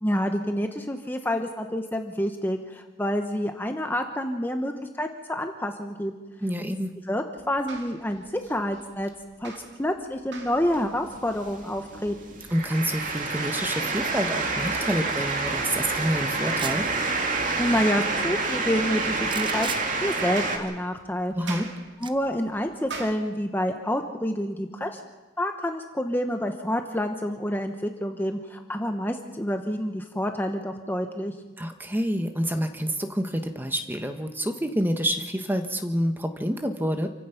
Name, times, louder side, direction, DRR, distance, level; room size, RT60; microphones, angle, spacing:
voice 1, 0.0-6.1 7.1-9.1 9.4-9.5 9.8-12.4 17.6-19.7 20.0-21.3 22.0-25.0 25.4-31.3, equal, 10° left, 5 dB, 1.1 m, -28 dB
voice 2, 6.4-6.9 12.5-16.8 21.3-21.7 31.6-37.1, equal, 10° right, 6 dB, 1.4 m, -28 dB
sound 1, 7.4-23.1, right 3 dB, 75° right, 2.5 m, -46 dB
sound 2, 10.5-20.6, right 3 dB, 45° right, 2.4 m, -28 dB
sound 3, 16.4-16.9 19.2-19.8 22.0-22.1, right 6 dB, 25° right, 0.9 m, -34 dB
28.0 x 16.0 x 6.0 m, 1.2 s
head